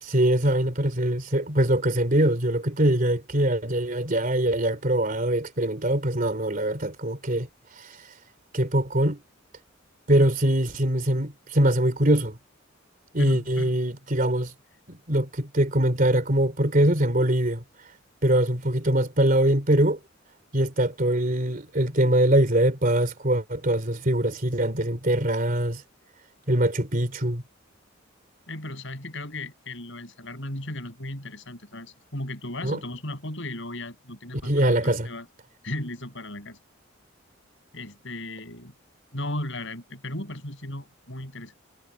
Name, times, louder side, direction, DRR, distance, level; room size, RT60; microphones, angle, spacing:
voice 1, 0.0-7.5 7.8-8.0 8.5-9.2 10.1-12.4 13.1-14.5 14.9-17.6 18.2-20.0 20.5-25.8 26.5-27.4 32.6-32.8 34.4-35.1, right 1 dB, 40° right, 3.4 m, -23 dB
voice 2, 13.2-13.8 28.5-35.3 35.6-36.6 37.7-38.7 39.1-41.5, left 1 dB, 65° left, 7.4 m, -36 dB
head